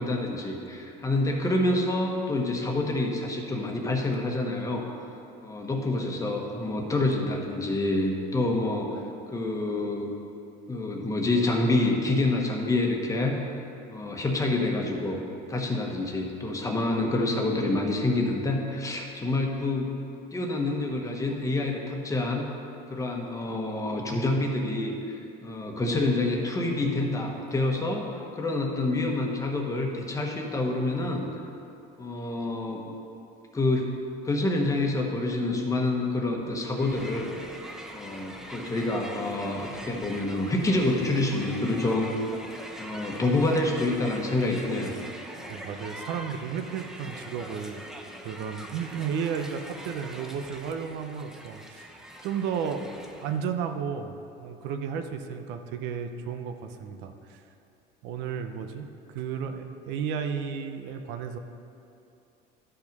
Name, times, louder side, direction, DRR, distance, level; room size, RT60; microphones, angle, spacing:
voice 1, 0.0-4.8 5.4-9.0 9.3-10.1 10.7-13.5 13.9-15.2 15.5-19.9 20.3-22.4 22.9-28.1 28.4-31.3 32.0-32.9 33.5-33.9 34.2-37.3 37.9-42.1 42.8-44.9, left 2 dB, 15° left, 1 dB, 1.3 m, -27 dB
Crowd, 36.7-53.4, right 1 dB, 5° right, 0.8 m, -43 dB
voice 2, 45.5-47.9 48.2-52.8 53.2-57.4 58.0-61.4, right 7 dB, 70° right, 7 dB, 0.8 m, -33 dB
12.0 x 5.7 x 5.3 m, 2.6 s
cardioid pair, 125°, 19 cm